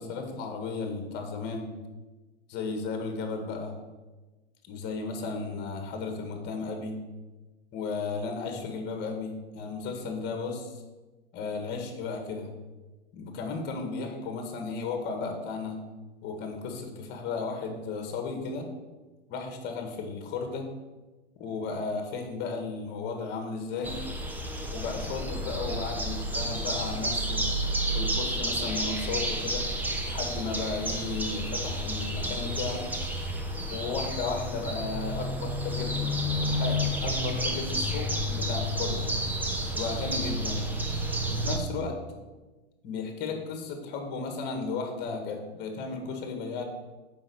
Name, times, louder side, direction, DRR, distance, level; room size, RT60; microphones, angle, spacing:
voice 1, 0.0-1.7 2.5-3.7 4.7-7.0 7.7-10.8 11.3-12.5 13.1-15.8 16.2-18.7 19.3-20.7 21.4-24.0 24.7-27.4 27.9-29.6 30.0-32.9 33.7-39.1 39.7-40.6 41.2-42.0 42.8-46.6, left 4 dB, 30° left, 4 dB, 1.8 m, -34 dB
sound 1, 23.8-41.6, equal, 5° right, 0.7 m, -30 dB
7.1 x 5.5 x 7.0 m, 1.2 s
supercardioid pair, 145°, 32 cm